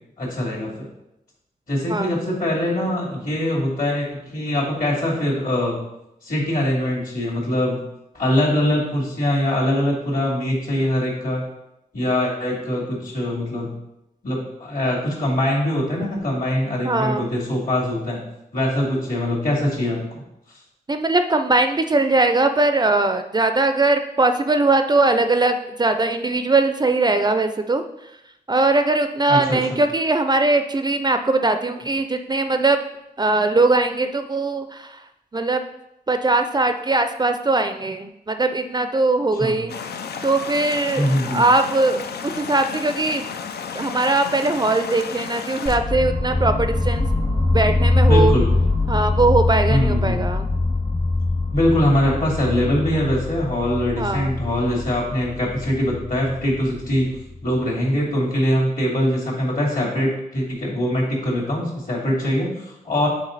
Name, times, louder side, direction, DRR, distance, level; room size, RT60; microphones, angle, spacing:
voice 1, 0.2-0.8 1.7-4.1 4.3-5.8 6.2-7.8 8.1-11.4 11.9-13.7 14.2-18.2 18.5-20.0 29.3-29.8 39.3-39.6 41.0-41.4 48.0-48.5 49.7-50.3 51.5-57.1 57.4-63.1, left 1 dB, 55° left, -4 dB, 2.7 m, -22 dB
voice 2, 16.8-17.3 20.9-27.8 28.5-32.8 33.2-34.9 35.3-35.6 36.1-39.7 40.2-42.0 42.3-43.3 43.7-47.1 47.5-48.3 48.9-50.5 54.0-54.3, right 2 dB, 25° right, 7 dB, 0.4 m, -20 dB
sound 1, 39.7-45.8, left 6 dB, 85° left, 0.5 m, -32 dB
sound 2, 45.7-57.6, left 2 dB, 30° left, 1.0 m, -23 dB
7.3 x 4.4 x 3.9 m, 0.86 s
wide cardioid pair, 100°, 17 cm